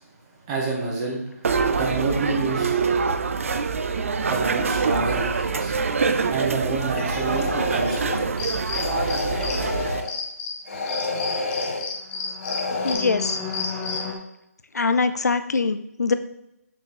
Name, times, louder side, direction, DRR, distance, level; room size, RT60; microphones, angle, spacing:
voice 1, 0.5-1.2 1.7-2.8 4.2-5.7 6.3-8.2, right 3 dB, 20° right, -2 dB, 1.5 m, -27 dB
sound 1, 1.4-10.0, right 5 dB, 55° right, 0.5 m, -25 dB
sound 2, 6.8-8.3 8.7-10.1 10.7-11.8 12.4-12.9, left 3 dB, 60° left, 2.8 m, -29 dB
sound 3, 8.4-9.7 10.0-14.1, left 4 dB, 10° left, 0.7 m, -31 dB
voice 2, 12.8-13.3 14.7-16.1, left 4 dB, 80° left, 10 dB, 0.6 m, -23 dB
6.8 x 6.4 x 3.1 m, 0.83 s
figure-of-eight pair, 160°, 9 cm